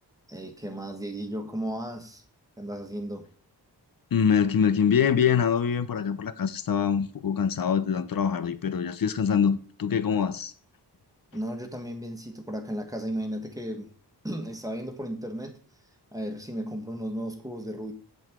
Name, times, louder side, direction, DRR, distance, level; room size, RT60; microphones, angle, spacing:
voice 1, 0.3-2.2 2.6-3.3 11.3-13.9 14.2-15.6 16.1-17.9, right 1 dB, 10° right, 1.5 m, -34 dB
voice 2, 4.1-10.5, left 7 dB, 55° left, 0.7 m, -24 dB
7.8 x 7.7 x 3.7 m
wide cardioid pair, 65°, 41 cm